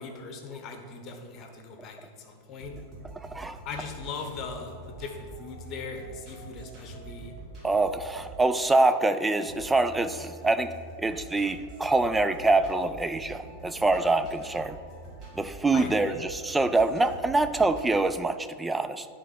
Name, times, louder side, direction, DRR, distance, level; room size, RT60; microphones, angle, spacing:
voice 1, 0.0-2.8 3.6-7.3 15.7-16.2, left 4 dB, 35° left, 4 dB, 1.1 m, -39 dB
sound 1, 2.6-18.0, right 2 dB, 30° right, 2.2 m, -45 dB
voice 2, 7.6-10.7 11.0-14.8 15.4-19.1, right 2 dB, 10° right, 11 dB, 0.4 m, -25 dB
10.0 x 3.8 x 6.1 m, 2.1 s
figure-of-eight pair, 90°, 0 cm